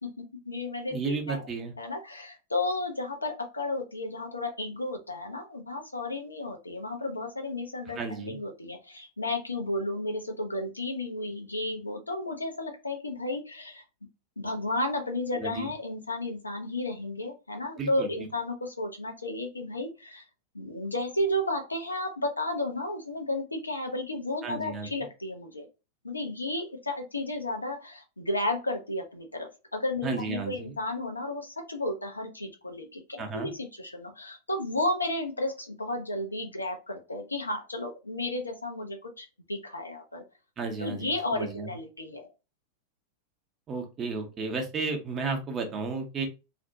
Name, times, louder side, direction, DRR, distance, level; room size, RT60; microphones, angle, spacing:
voice 1, 0.0-1.4 1.8-13.8 14.4-20.2 20.5-25.7 26.0-40.2 40.8-42.3, left 2 dB, 80° left, 3 dB, 0.5 m, -33 dB
voice 2, 0.9-1.7 7.9-8.4 15.4-15.7 17.8-18.1 24.4-24.9 30.0-30.7 33.2-33.5 40.6-41.7 43.7-46.3, right 4 dB, 25° right, 3 dB, 0.6 m, -33 dB
2.5 x 2.1 x 2.6 m, 0.29 s
figure-of-eight pair, 90°, 0 cm